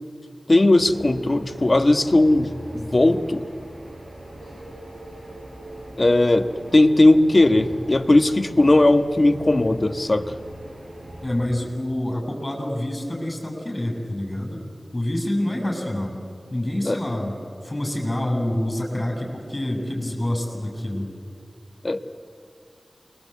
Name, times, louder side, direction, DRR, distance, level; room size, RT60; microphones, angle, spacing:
voice 1, 0.5-3.4 6.0-10.3 16.9-17.0 21.8-22.0, left 2 dB, 40° left, 8 dB, 1.4 m, -18 dB
sound 1, 0.8-11.4, right 1 dB, 40° right, 5.8 m, -39 dB
voice 2, 11.2-14.6 14.9-16.2 16.5-17.4 17.6-21.1, left 1 dB, 25° left, 2 dB, 7.9 m, -27 dB
28.5 x 22.5 x 8.4 m, 2.3 s
wide cardioid pair, 55°, 0 cm